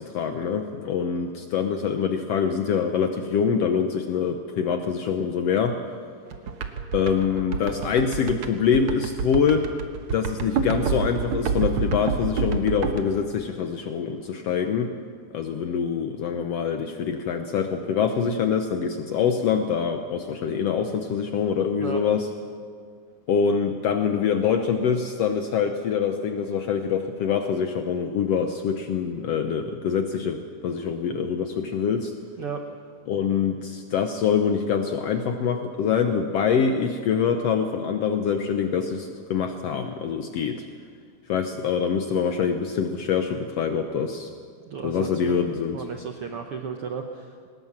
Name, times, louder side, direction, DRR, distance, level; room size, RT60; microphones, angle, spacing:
voice 1, 0.0-5.8 6.9-9.6 10.1-14.9 15.3-22.3 23.3-32.1 33.1-40.6 41.3-44.3 44.8-45.8, left 6 dB, 85° left, 6 dB, 1.4 m, -25 dB
sound 1, 6.3-13.0, right 5 dB, 65° right, 1.4 m, -27 dB
voice 2, 44.7-45.5 45.7-47.4, right 6 dB, 90° right, 4 dB, 1.2 m, -34 dB
21.5 x 19.5 x 7.4 m, 2.1 s
omnidirectional pair, 4.2 m